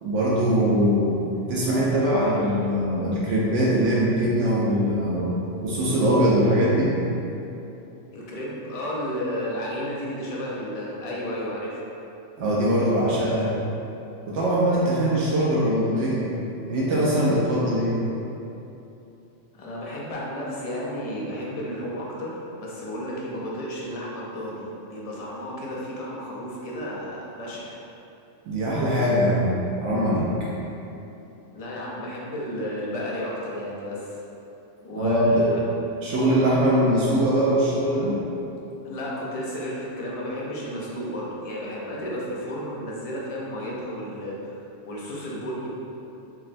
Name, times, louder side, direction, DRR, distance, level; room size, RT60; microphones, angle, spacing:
voice 1, 0.0-1.2 1.5-5.4 5.6-7.0 12.4-13.6 14.3-16.3 16.7-18.0 28.5-30.5 35.0-35.4 36.0-38.2, equal, 75° right, -6 dB, 0.9 m, -22 dB
voice 2, 8.1-11.8 19.5-27.8 31.5-34.2 34.8-35.6 38.8-44.4 44.8-45.7, equal, 40° left, -5 dB, 0.5 m, -32 dB
5.8 x 2.1 x 2.5 m, 2.9 s
omnidirectional pair, 1.3 m